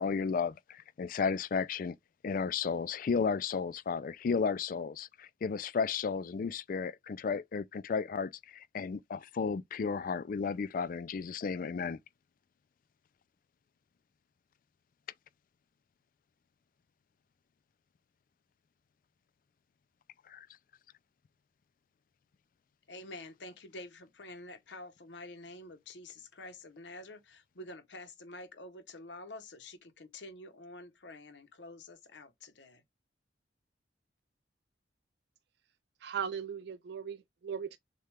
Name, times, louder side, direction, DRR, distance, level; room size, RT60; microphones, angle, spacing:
voice 1, 0.0-2.0 2.2-12.0 20.3-20.5, left 5 dB, 50° left, 0.3 m, -33 dB
voice 2, 22.9-32.8, left 2 dB, 85° left, 0.9 m, -48 dB
voice 3, 36.0-37.8, right 7 dB, 65° right, 0.3 m, -38 dB
6.5 x 2.3 x 3.3 m
head